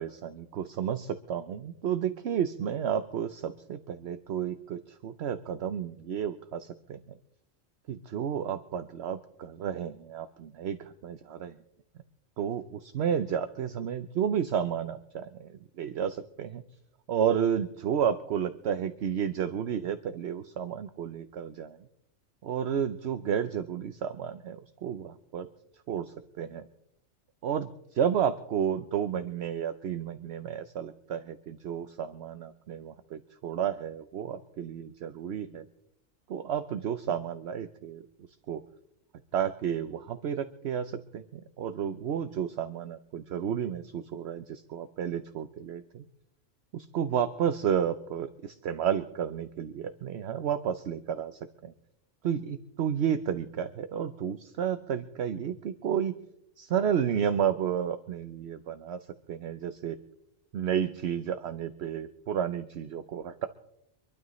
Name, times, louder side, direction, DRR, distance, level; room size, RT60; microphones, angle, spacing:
voice 1, 0.0-7.0 7.9-11.5 12.4-16.6 17.1-21.8 22.4-25.5 25.9-26.7 27.4-35.7 36.3-38.0 38.5-38.6 39.3-46.1 46.7-51.7 52.2-56.2 56.6-59.0 59.3-60.0 60.5-63.5, right 8 dB, 60° right, 10 dB, 0.9 m, -31 dB
26.0 x 12.0 x 3.1 m, 0.78 s
omnidirectional pair, 1.4 m